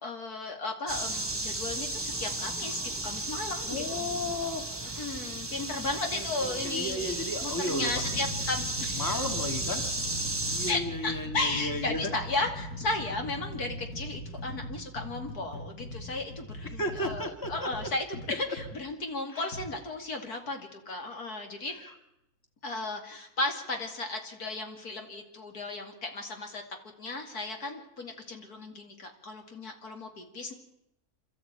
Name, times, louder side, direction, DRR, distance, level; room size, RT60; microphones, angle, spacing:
voice 1, 0.0-4.0 4.9-9.2 10.7-21.7 22.6-26.6 27.0-30.5, left 2 dB, 75° left, 4 dB, 3.0 m, -35 dB
sound 1, 0.9-10.7, right 2 dB, 10° right, 1.9 m, -34 dB
voice 2, 3.7-4.6 6.1-8.2 9.0-9.8 10.4-12.1 16.8-17.7 19.3-19.4, left 1 dB, 10° left, 5 dB, 2.4 m, -34 dB
sound 2, 5.5-5.8 6.6-6.8 7.4-18.7 19.5-19.7, left 1 dB, 60° left, 5.5 m, -40 dB
27.5 x 13.0 x 9.0 m, 0.83 s
omnidirectional pair, 1.6 m